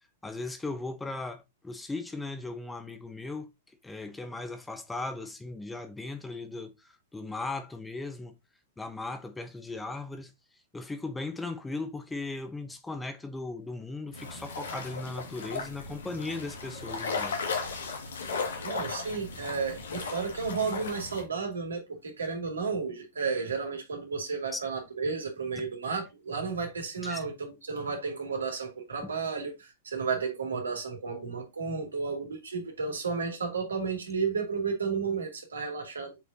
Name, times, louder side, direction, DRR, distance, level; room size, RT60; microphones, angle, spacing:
voice 1, 0.2-3.5 3.8-6.7 7.1-8.3 8.8-10.3 10.7-17.4 24.5-24.6 27.0-27.2 29.0-29.1, left 3 dB, 10° left, 0.9 m, -37 dB
sound 1, 14.1-21.2, left 4 dB, 70° left, 2.0 m, -36 dB
voice 2, 18.6-36.2, right 5 dB, 75° right, 2.6 m, -33 dB
7.1 x 5.4 x 2.8 m
figure-of-eight pair, 100°, 0 cm